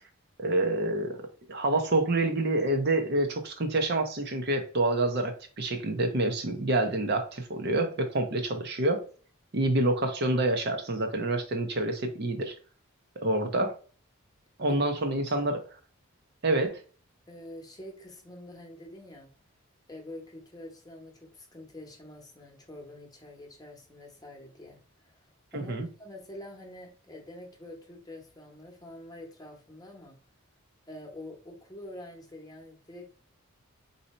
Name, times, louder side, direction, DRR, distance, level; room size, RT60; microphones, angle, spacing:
voice 1, 0.4-1.2 1.5-9.1 9.5-12.5 13.2-13.7 14.6-15.7 16.4-16.8 25.5-25.9, right 2 dB, 45° right, 0.7 m, -27 dB
voice 2, 14.7-15.2 17.3-19.3 19.9-25.3 25.5-30.2 30.9-33.1, left 1 dB, 15° left, 0.9 m, -46 dB
4.0 x 2.7 x 4.2 m
head